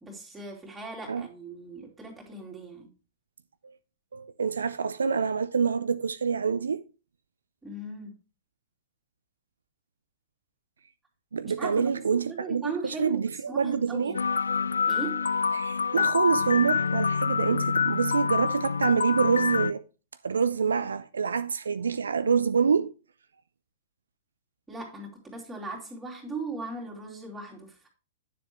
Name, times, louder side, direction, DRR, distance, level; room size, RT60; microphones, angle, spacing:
voice 1, 0.0-2.9 7.6-8.1 11.4-11.8 12.1-13.2 13.5-14.2 14.9-15.2 24.7-27.9, right 3 dB, 10° right, 2.9 m, -38 dB
voice 2, 4.1-6.8 11.3-14.2 15.5-19.8 20.2-22.9, right 6 dB, 70° right, 0.4 m, -26 dB
sound 1, 14.1-19.7, left 5 dB, 75° left, 0.3 m, -26 dB
9.9 x 6.9 x 3.1 m
figure-of-eight pair, 105°, 0 cm